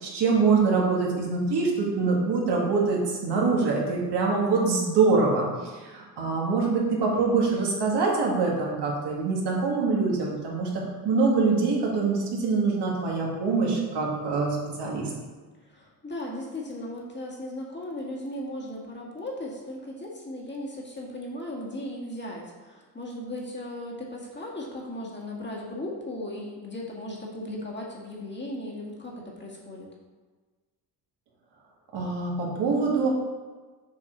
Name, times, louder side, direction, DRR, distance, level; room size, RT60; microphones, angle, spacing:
voice 1, 0.0-15.1 31.9-33.1, right 4 dB, 65° right, -3 dB, 2.0 m, -24 dB
voice 2, 15.6-29.9, left 1 dB, 25° left, -3 dB, 1.9 m, -37 dB
7.2 x 4.6 x 3.9 m, 1.4 s
supercardioid pair, 80°, 44 cm